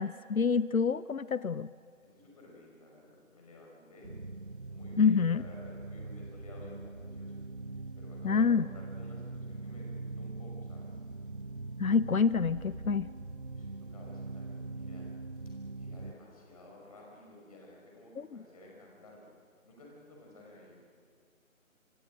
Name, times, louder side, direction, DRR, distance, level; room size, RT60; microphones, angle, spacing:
voice 1, 0.0-1.7 5.0-5.4 8.2-8.6 11.8-13.1 18.2-18.3, left 5 dB, 85° left, 17 dB, 0.7 m, -27 dB
voice 2, 2.1-4.2 4.7-7.4 8.0-10.9 13.5-15.1 15.7-19.3 19.6-20.8, left 1 dB, 25° left, -2 dB, 5.6 m, -54 dB
sound 1, 4.0-16.1, right 3 dB, 40° right, 0.6 m, -42 dB
27.0 x 25.5 x 6.4 m, 2.1 s
figure-of-eight pair, 155°, 41 cm